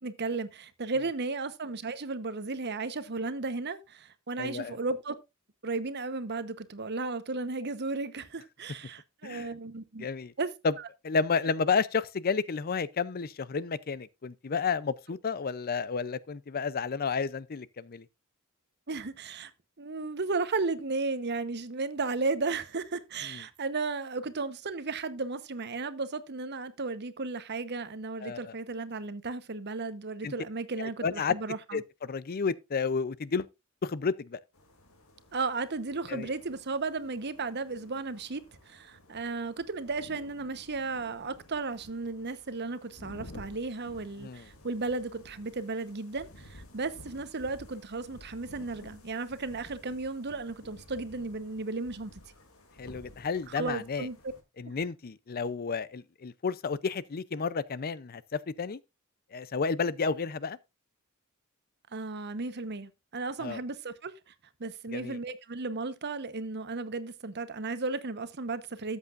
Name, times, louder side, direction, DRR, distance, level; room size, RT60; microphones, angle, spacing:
voice 1, 0.0-5.2 5.6-10.1 10.4-10.5 18.9-19.5 19.8-31.8 35.3-52.2 53.6-54.2 61.9-64.3 64.6-69.0, right 3 dB, 55° right, 1.0 m, -34 dB
voice 2, 4.4-4.8 9.2-9.5 10.0-10.3 10.6-10.7 11.0-18.1 23.3-23.4 28.2-28.5 30.2-30.3 30.8-31.4 31.7-33.5 33.8-34.4 36.1-36.3 44.2-44.5 52.8-54.1 54.6-58.8 59.3-60.6 63.4-63.6 64.9-65.2, left 5 dB, 45° left, 0.5 m, -31 dB
sound 1, 34.5-54.4, left 1 dB, 90° left, 2.7 m, -53 dB
13.5 x 8.2 x 2.5 m
head